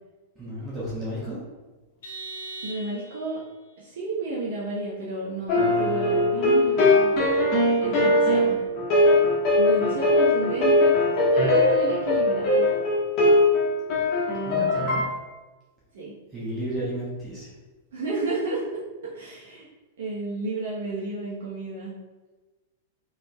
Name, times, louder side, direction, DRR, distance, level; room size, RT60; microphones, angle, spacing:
voice 1, 0.3-1.4 14.4-15.0 16.3-17.5, right 1 dB, 20° right, -7 dB, 1.3 m, -33 dB
Vehicle horn car horn honking, 2.0-3.4, right 3 dB, 60° left, 0.7 m, -39 dB
voice 2, 2.6-3.4 3.8-7.1 7.8-8.6 9.6-12.7 15.9-16.2 17.9-19.7 20.0-21.9, right 2 dB, 60° right, -6 dB, 0.9 m, -32 dB
sound 1, 5.5-15.0, left 2 dB, 40° left, 1.3 m, -20 dB
5.1 x 3.6 x 2.3 m, 1.2 s
figure-of-eight pair, 95°, 0 cm